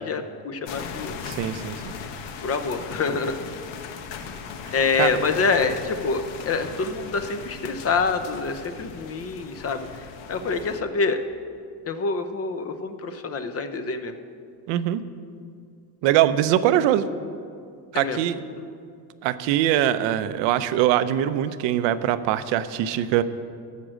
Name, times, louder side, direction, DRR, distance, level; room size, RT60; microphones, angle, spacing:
voice 1, 0.0-1.2 2.4-3.3 4.7-9.9 10.3-11.2 11.9-14.1 17.9-18.2, left 4 dB, 30° left, 9 dB, 0.8 m, -26 dB
sound 1, 0.7-10.8, left 6 dB, 65° left, 1.3 m, -38 dB
voice 2, 1.3-1.9 5.0-5.1 14.7-15.0 16.0-17.0 17.9-18.4 19.2-23.2, right 12 dB, 70° right, 13 dB, 0.8 m, -22 dB
13.5 x 7.6 x 6.3 m, 2.3 s
cardioid pair, 115°, 46 cm